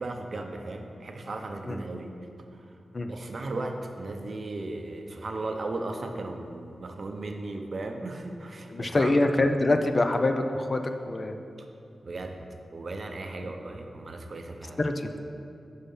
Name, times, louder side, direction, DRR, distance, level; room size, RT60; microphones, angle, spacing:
voice 1, 0.0-2.1 2.5-2.8 3.1-9.1 11.6-11.7 12.0-12.4 12.7-14.8, right 2 dB, 45° right, 4 dB, 0.6 m, -36 dB
voice 2, 8.7-11.4 14.8-15.1, left 2 dB, 30° left, 7 dB, 0.4 m, -25 dB
6.9 x 5.6 x 5.4 m, 2.6 s
wide cardioid pair, 135°, 0 cm